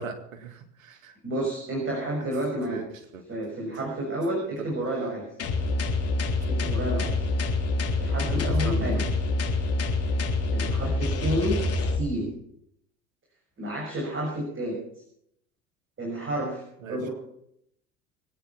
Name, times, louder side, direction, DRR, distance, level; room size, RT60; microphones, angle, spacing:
voice 1, 0.0-1.1 2.2-2.3 2.7-2.8 3.1-3.2 8.3-8.4 8.6-9.0 16.8-17.0, right 5 dB, 80° right, 7 dB, 2.2 m, -39 dB
voice 2, 1.2-2.8 3.3-5.3 6.5-7.1 8.0-9.1 10.5-12.3 13.6-14.8 16.0-16.6 16.9-17.1, right 1 dB, 30° right, -1 dB, 6.2 m, -30 dB
sound 1, 5.4-12.0, left 2 dB, 35° left, 3.6 m, -26 dB
23.0 x 9.3 x 5.8 m, 0.72 s
hypercardioid pair, 70°, 39 cm